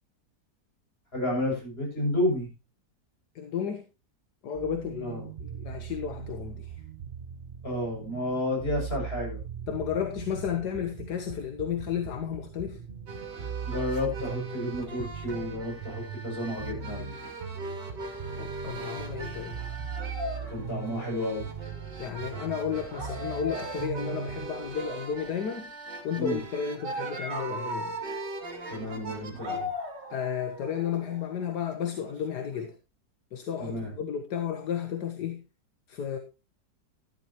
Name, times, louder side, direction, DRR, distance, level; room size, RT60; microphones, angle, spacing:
voice 1, 1.1-2.5 5.0-5.2 7.6-9.4 13.7-17.1 20.5-21.5 26.2-26.4 28.7-29.7 33.6-33.9, left 1 dB, 35° left, 7.3 m, -31 dB
voice 2, 3.3-3.8 4.4-5.1 5.4-6.8 9.7-12.8 18.4-19.6 22.0-25.7 26.0-28.0 30.1-32.7 33.3-35.4 35.9-36.2, left 8 dB, 70° left, 1.7 m, -33 dB
sound 1, 4.5-24.5, right 7 dB, 45° right, 0.8 m, -40 dB
sound 2, 13.1-32.7, right 1 dB, 85° right, 3.1 m, -39 dB
14.0 x 11.0 x 3.0 m
omnidirectional pair, 1.8 m